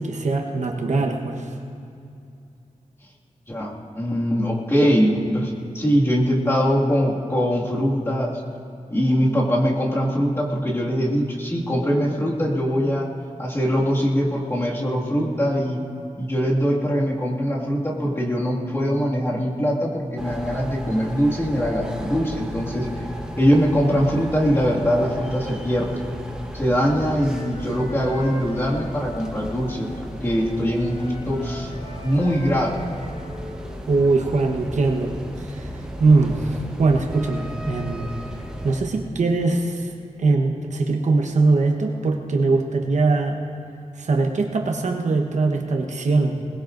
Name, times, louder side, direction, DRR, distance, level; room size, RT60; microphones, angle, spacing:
voice 1, 0.0-1.5 33.9-38.1 38.6-39.9 40.2-43.4 44.0-46.4, right 3 dB, 70° right, 2 dB, 1.2 m, -21 dB
voice 2, 3.5-8.4 8.9-13.1 13.4-15.8 16.2-22.9 23.4-26.0 26.5-31.7 32.0-32.9, equal, 20° left, -4 dB, 2.1 m, -22 dB
sound 1, 20.2-38.8, equal, 5° right, 1.2 m, -35 dB
Wind instrument woodwind instrument, 27.1-30.1 30.3-33.9, left 1 dB, 60° left, 3.7 m, -41 dB
21.5 x 20.5 x 2.6 m, 2.5 s
wide cardioid pair, 145°, 13 cm